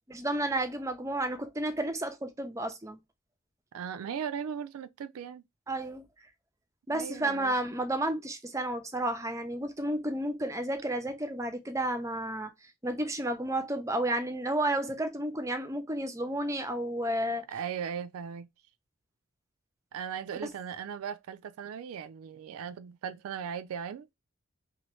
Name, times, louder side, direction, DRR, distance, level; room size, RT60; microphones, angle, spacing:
voice 1, 0.1-3.0 5.7-6.0 6.9-17.4, right 1 dB, 15° right, 0.4 m, -32 dB
voice 2, 3.7-5.4 6.9-7.6 17.5-18.5 19.9-24.1, right 7 dB, 85° right, 0.3 m, -38 dB
3.0 x 2.1 x 3.0 m
head